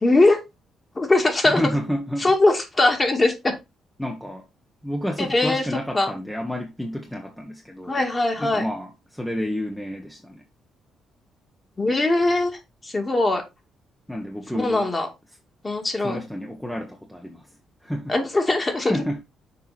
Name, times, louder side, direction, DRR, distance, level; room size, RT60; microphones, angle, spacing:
voice 1, 0.0-0.4 1.0-1.6 2.2-3.5 5.2-5.6 5.9-6.1 7.9-8.7 11.8-12.5 12.8-13.4 14.5-15.1 15.6-16.2 18.1-19.0, left 2 dB, 25° left, 2.4 m, -20 dB
voice 2, 1.4-2.3 4.0-4.5 4.8-8.0 8.4-10.4 14.1-15.0 15.3-15.4 16.0-18.2 18.9-19.2, equal, 5° left, 1.2 m, -30 dB
6.8 x 4.8 x 4.2 m
cardioid pair, 90°, 0 cm